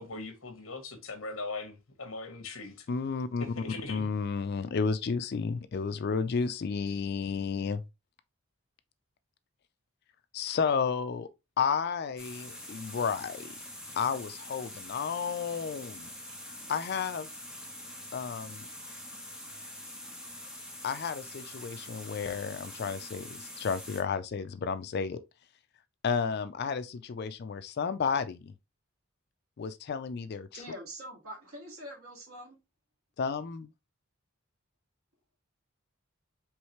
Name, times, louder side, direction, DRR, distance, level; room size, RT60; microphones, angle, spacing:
voice 1, 0.0-2.9 3.4-4.1, left 3 dB, 65° left, 1.1 m, -40 dB
voice 2, 2.9-3.5 3.9-7.8 10.3-11.3 11.6-13.5 14.0-16.1 16.7-17.3 18.1-18.7 20.8-25.2 26.0-28.5 29.6-30.6 33.2-33.7, left 5 dB, 50° left, 0.4 m, -32 dB
sound 1, 12.2-24.0, left 1 dB, 5° right, 0.9 m, -45 dB
voice 3, 30.5-32.6, equal, 75° right, 2.0 m, -44 dB
4.7 x 3.2 x 3.0 m
head